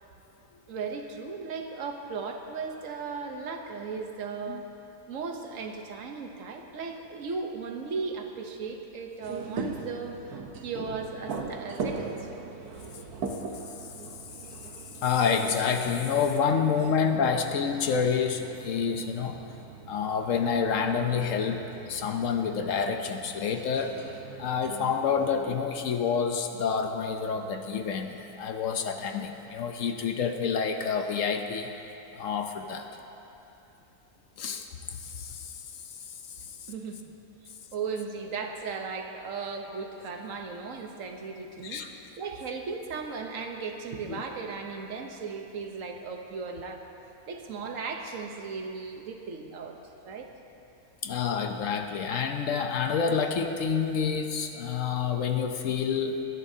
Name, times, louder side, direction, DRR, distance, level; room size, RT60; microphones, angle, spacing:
voice 1, 0.7-4.6 5.1-12.6 36.7-37.0 37.7-41.8 42.2-46.8 47.3-49.8 50.0-50.3, right 4 dB, 60° right, 4 dB, 1.3 m, -36 dB
sound 1, 9.2-25.4, right 4 dB, 85° right, 1.4 m, -40 dB
voice 2, 15.0-19.4 19.9-24.0 24.4-31.8 32.1-32.9 34.4-34.7 34.9-35.5 36.1-36.4 41.6-41.9 44.1-44.2 51.0-56.2, left 6 dB, 65° left, 5 dB, 1.0 m, -28 dB
21.5 x 10.5 x 2.8 m, 2.9 s
omnidirectional pair, 1.6 m